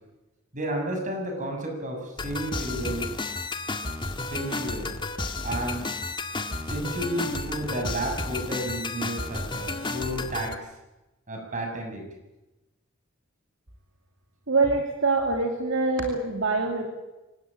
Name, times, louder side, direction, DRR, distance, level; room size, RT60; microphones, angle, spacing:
voice 1, 0.5-3.1 4.3-4.9 5.4-5.9 6.7-10.6 11.3-12.1, right 1 dB, 40° right, 2 dB, 7.0 m, -32 dB
sound 1, 2.2-10.5, left 3 dB, 25° left, 1.7 m, -32 dB
voice 2, 14.5-16.9, right 3 dB, 65° right, 3 dB, 2.7 m, -24 dB
25.5 x 18.0 x 8.9 m, 1.0 s
head